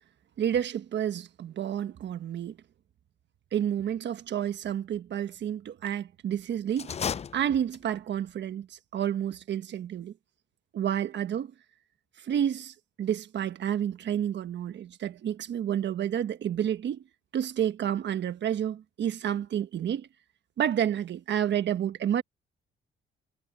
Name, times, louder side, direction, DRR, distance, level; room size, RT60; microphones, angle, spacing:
voice 1, 0.4-2.6 3.5-6.9 7.3-10.1 10.7-11.5 12.2-17.0 17.3-20.1 20.6-22.2, right 9 dB, 65° right, 1.4 m, -30 dB
sound 1, 6.7-8.1, left 7 dB, 30° left, 0.5 m, -34 dB
cardioid pair, 90°, 20 cm